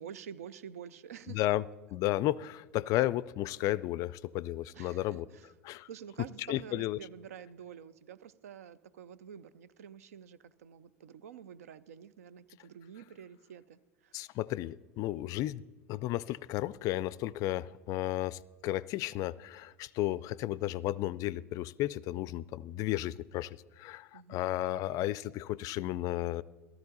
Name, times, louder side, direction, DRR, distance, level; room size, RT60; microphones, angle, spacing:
voice 1, 0.0-1.4 4.7-5.5 5.9-14.2 24.1-24.6, right 8 dB, 70° right, 18 dB, 0.5 m, -48 dB
voice 2, 1.3-1.6 1.9-5.3 5.6-5.9 6.5-7.0 14.1-15.6 15.9-26.4, left 15 dB, 45° left, 21 dB, 0.3 m, -33 dB
14.0 x 13.5 x 4.0 m, 1.2 s
figure-of-eight pair, 80°, 8 cm